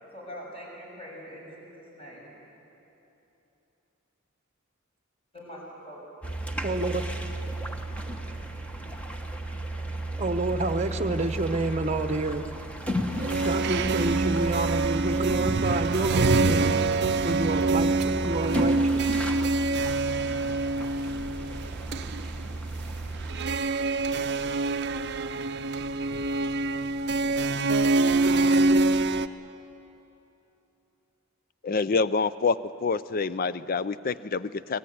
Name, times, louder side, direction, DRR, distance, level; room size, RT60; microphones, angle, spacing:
voice 1, 0.1-2.3 5.3-6.0, equal, 30° left, -3 dB, 6.6 m, -43 dB
sound 1, 6.2-23.6, right 1 dB, 5° left, 1.2 m, -34 dB
voice 2, 6.6-7.0 10.2-12.4 13.4-16.8 17.2-19.2, right 2 dB, 30° right, 9 dB, 1.0 m, -28 dB
sound 2, 13.2-29.3, right 3 dB, 55° right, 0.6 m, -26 dB
voice 3, 31.6-34.8, left 4 dB, 45° left, 16 dB, 0.5 m, -27 dB
24.0 x 18.0 x 9.5 m, 3.0 s
head